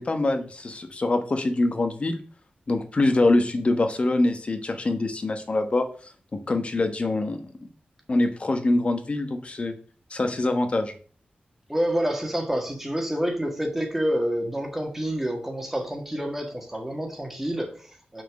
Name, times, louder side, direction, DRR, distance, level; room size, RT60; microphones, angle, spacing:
voice 1, 0.0-2.2 2.7-5.9 6.3-7.7 8.1-9.7 10.1-10.9, left 2 dB, 40° left, 6 dB, 1.1 m, -24 dB
voice 2, 11.7-18.2, equal, 10° right, 1 dB, 1.7 m, -28 dB
6.3 x 4.4 x 6.4 m, 0.42 s
wide cardioid pair, 145°, 3 cm